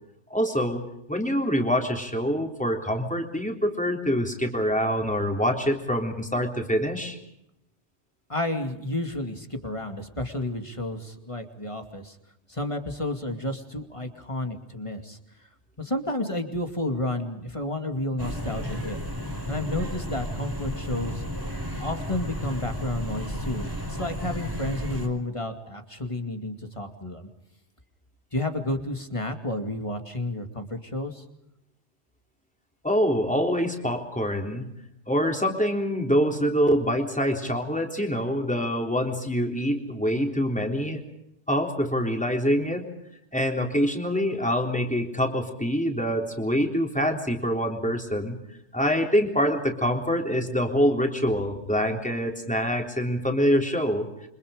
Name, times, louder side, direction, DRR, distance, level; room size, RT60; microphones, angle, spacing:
voice 1, 0.3-0.8 1.1-7.2 32.8-34.7 35.1-41.0 41.5-42.9 43.3-48.4 48.7-54.1, equal, 5° left, 2 dB, 3.6 m, -25 dB
voice 2, 8.3-12.2 12.5-15.2 15.8-19.0 19.5-21.2 21.8-27.3 28.3-31.2, left 1 dB, 30° left, 6 dB, 2.5 m, -31 dB
sound 1, 18.2-25.1, equal, 20° right, 4.7 m, -33 dB
28.5 x 26.0 x 5.1 m, 0.81 s
omnidirectional pair, 1.1 m